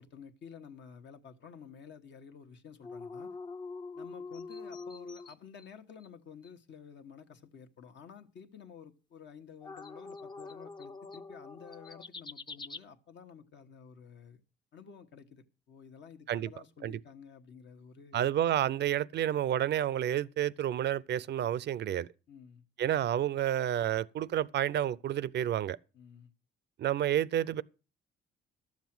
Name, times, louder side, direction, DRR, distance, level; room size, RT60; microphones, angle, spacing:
voice 1, 0.0-3.4 3.9-14.4 14.7-18.3 22.3-22.7 25.9-26.3, left 7 dB, 65° left, 1.3 m, -51 dB
sound 1, 2.8-5.7 6.0-6.1 6.4-6.5 9.6-12.8, left 4 dB, 25° left, 0.6 m, -44 dB
voice 2, 18.1-22.1 22.8-25.8 26.8-27.6, right 11 dB, 60° right, 0.5 m, -30 dB
12.0 x 7.3 x 6.0 m
cardioid pair, 90°, 20 cm